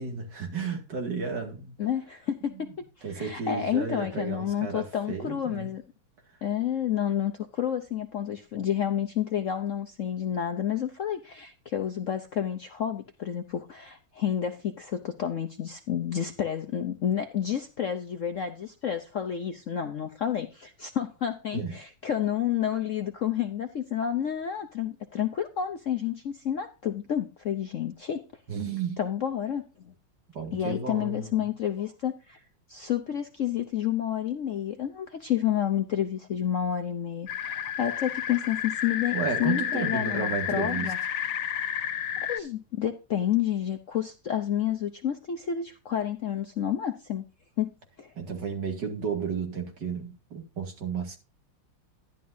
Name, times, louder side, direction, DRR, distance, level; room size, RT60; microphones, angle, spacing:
voice 1, 0.0-1.7 2.5-2.7 3.0-5.7 6.3-6.4 21.5-21.8 28.5-29.0 30.3-31.5 39.1-40.9 48.1-51.2, right 5 dB, 55° right, 2.8 m, -33 dB
voice 2, 1.8-2.7 3.1-5.8 6.4-28.2 29.0-29.9 30.5-32.4 32.7-41.0 42.2-47.2 47.6-47.7 48.0-48.1, left 9 dB, 70° left, 0.7 m, -30 dB
sound 1, 37.3-42.4, left 9 dB, 85° left, 1.7 m, -31 dB
11.5 x 11.0 x 2.7 m
omnidirectional pair, 2.3 m